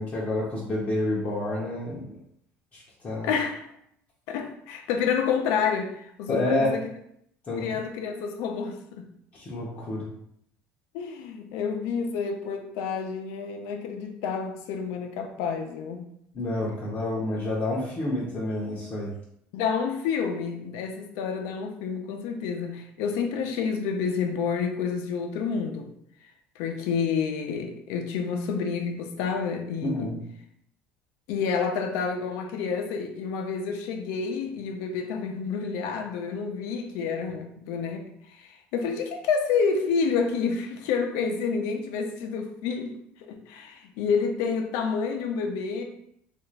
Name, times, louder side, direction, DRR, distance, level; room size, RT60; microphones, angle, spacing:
voice 1, 0.0-2.1 2.7-3.3 6.3-6.7 7.5-7.6 9.3-10.1 16.3-19.1 29.8-30.2, left 1 dB, 30° left, -6 dB, 0.7 m, -29 dB
voice 2, 3.2-3.7 4.3-6.8 7.6-9.1 10.9-16.1 19.5-25.9 26.6-30.1 31.3-42.9 43.2-45.8, left 6 dB, 80° left, 4 dB, 0.6 m, -29 dB
3.4 x 2.5 x 3.2 m, 0.71 s
cardioid pair, 145°, 5 cm